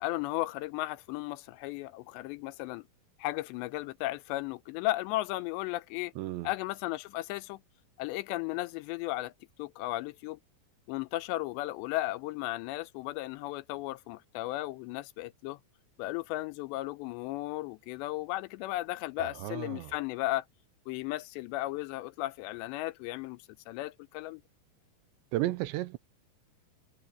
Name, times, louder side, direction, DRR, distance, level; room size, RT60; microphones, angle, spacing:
voice 1, 0.0-2.9 3.2-6.1 6.4-7.6 8.0-9.3 9.6-10.4 10.9-15.6 16.0-20.5 20.9-24.4, left 17 dB, 85° left, 2.7 m, -35 dB
voice 2, 6.2-6.5 19.2-19.9 25.3-26.0, right 16 dB, 85° right, 3.0 m, -33 dB
omnidirectional pair, 5.2 m